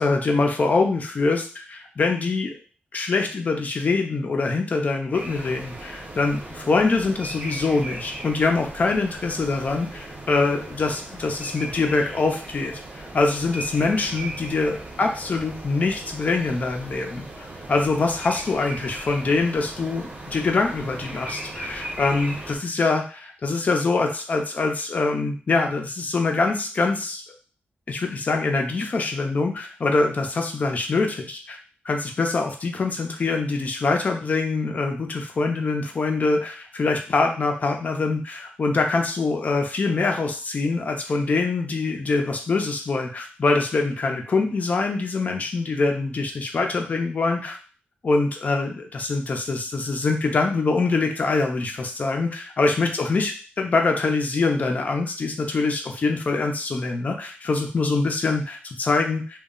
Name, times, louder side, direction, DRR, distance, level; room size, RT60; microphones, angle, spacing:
voice 1, 0.0-2.6 2.9-27.2 27.9-31.6 31.8-47.6 48.0-53.3 53.6-59.4, left 3 dB, 40° left, 3 dB, 0.5 m, -24 dB
sound 1, 5.1-22.6, right 1 dB, 35° right, 0.6 m, -38 dB
2.3 x 2.0 x 3.7 m, 0.39 s
wide cardioid pair, 125°, 4 cm